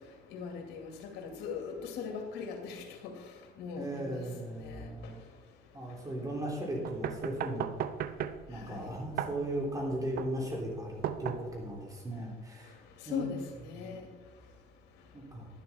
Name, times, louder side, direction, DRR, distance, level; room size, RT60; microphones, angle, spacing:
voice 1, 0.3-3.1 3.6-4.3 4.6-4.9 8.6-8.9 13.1-14.0, left 6 dB, 85° left, 2 dB, 2.3 m, -40 dB
voice 2, 3.8-5.2 5.7-7.7 8.5-12.8 13.1-13.3 13.8-14.0 15.1-15.5, right 1 dB, 20° right, -1 dB, 3.6 m, -37 dB
sound 1, 6.8-11.8, right 9 dB, 60° right, 0.7 m, -37 dB
11.0 x 11.0 x 4.4 m, 1.3 s
cardioid pair, 110°, 17 cm